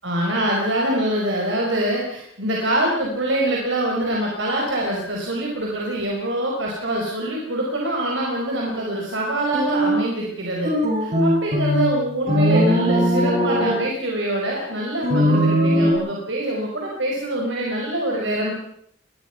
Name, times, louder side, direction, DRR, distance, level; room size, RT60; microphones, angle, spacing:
voice 1, 0.0-10.7 11.0-18.5, right 1 dB, 65° right, -2 dB, 5.0 m, -24 dB
sound 1, 9.5-10.0 10.6-12.0 12.3-13.8 15.0-15.9, equal, 35° right, 7.8 m, -19 dB
23.5 x 21.0 x 6.0 m, 0.68 s
head